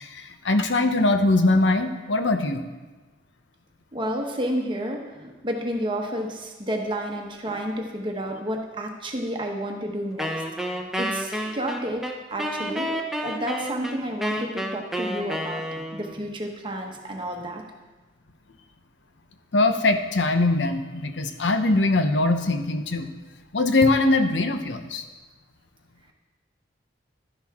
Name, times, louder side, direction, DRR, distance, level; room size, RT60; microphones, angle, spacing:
voice 1, 0.0-2.6 19.5-23.1 23.5-25.0, left 2 dB, 80° left, 8 dB, 0.9 m, -22 dB
voice 2, 3.9-10.3 10.6-17.6, equal, 25° right, 2 dB, 1.1 m, -31 dB
Wind instrument woodwind instrument, 10.2-16.2, equal, ahead, 0.8 m, -30 dB
12.0 x 10.5 x 3.6 m, 1.2 s
head